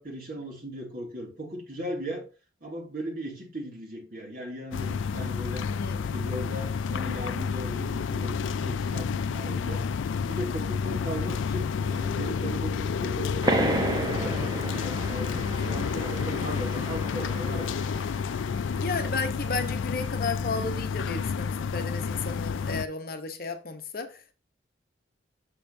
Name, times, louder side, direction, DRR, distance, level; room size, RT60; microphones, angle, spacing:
voice 1, 0.0-2.2 2.6-5.7 6.1-9.8 10.3-17.8, right 1 dB, 50° right, 2.6 m, -38 dB
sound 1, 4.7-22.9, left 6 dB, 85° left, 0.3 m, -30 dB
voice 2, 5.7-6.1 18.8-24.3, left 4 dB, 50° left, 0.9 m, -33 dB
sound 2, 13.4-18.7, right 1 dB, 20° right, 0.8 m, -32 dB
6.9 x 6.7 x 2.7 m
head